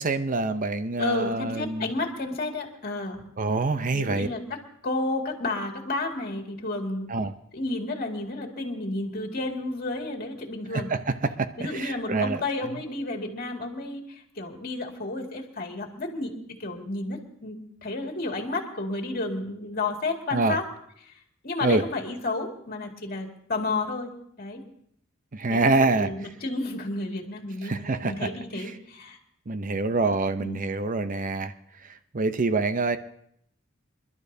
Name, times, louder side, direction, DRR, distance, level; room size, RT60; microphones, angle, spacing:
voice 1, 0.0-1.9 3.4-4.3 7.1-7.3 10.7-12.8 20.3-20.6 21.6-21.8 25.3-26.1 27.6-28.3 28.6-28.7 29.5-31.5 31.8-33.0, right 3 dB, 40° right, 11 dB, 0.7 m, -26 dB
voice 2, 1.0-3.2 3.9-4.4 4.8-7.1 7.5-10.9 11.6-20.6 21.0-21.1 21.4-24.1 24.4-24.6 25.5-29.2 30.4-30.6, left 2 dB, 45° left, 1 dB, 2.1 m, -31 dB
28.0 x 12.0 x 2.7 m, 0.70 s
head